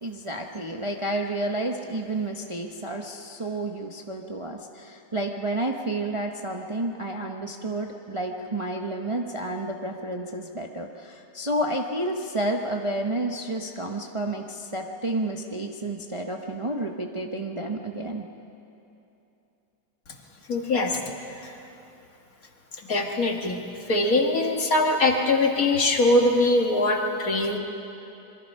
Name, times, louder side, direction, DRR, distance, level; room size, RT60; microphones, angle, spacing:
voice 1, 0.0-18.3, right 1 dB, 20° right, 2 dB, 0.9 m, -30 dB
voice 2, 20.5-21.0 21.4-21.5 22.8-23.6 23.9-27.6, left 2 dB, 55° left, 2 dB, 2.1 m, -22 dB
26.5 x 23.0 x 5.5 m, 2.8 s
omnidirectional pair, 1.9 m